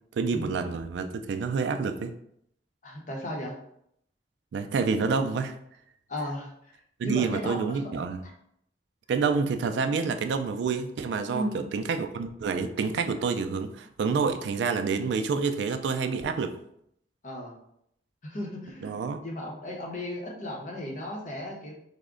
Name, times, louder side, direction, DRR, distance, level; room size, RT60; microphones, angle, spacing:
voice 1, 0.1-2.1 4.5-5.5 7.0-8.2 9.1-11.5 11.7-16.6 18.8-19.2, right 5 dB, 80° right, 8 dB, 0.3 m, -28 dB
voice 2, 2.8-3.6 6.1-6.7 7.0-8.0 11.3-11.6 17.2-17.6 18.2-21.7, left 1 dB, 45° left, -1 dB, 0.7 m, -35 dB
3.4 x 2.1 x 3.6 m, 0.73 s
head